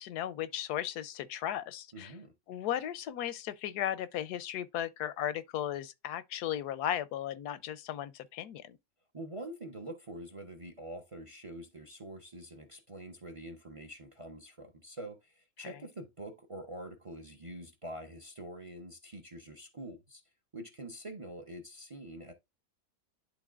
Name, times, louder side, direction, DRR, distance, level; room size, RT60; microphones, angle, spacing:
voice 1, 0.0-2.1 2.5-8.8, left 11 dB, 85° left, 1.2 m, -36 dB
voice 2, 1.9-2.3 9.1-20.2 20.5-22.3, right 1 dB, 30° right, 0.7 m, -45 dB
11.0 x 3.8 x 2.5 m
omnidirectional pair, 1.7 m